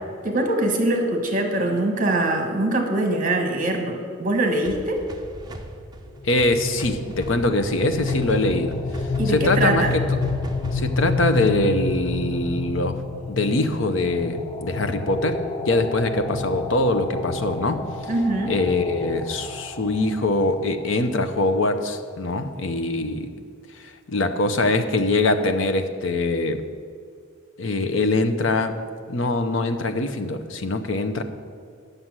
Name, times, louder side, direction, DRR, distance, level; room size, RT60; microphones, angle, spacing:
voice 1, 0.2-5.0 9.2-9.9 18.1-18.5, right 2 dB, 40° right, 4 dB, 1.4 m, -23 dB
sound 1, 4.6-11.4, right 2 dB, 20° right, 0.7 m, -40 dB
voice 2, 6.2-8.7 9.3-9.9 10.7-13.0 13.3-17.8 18.5-23.3 23.8-26.6 27.6-28.7 29.1-31.2, left 2 dB, 70° left, 8 dB, 0.8 m, -23 dB
sound 2, 6.2-21.1, left 4 dB, 20° left, 0.6 m, -29 dB
9.7 x 6.7 x 7.4 m, 2.2 s
head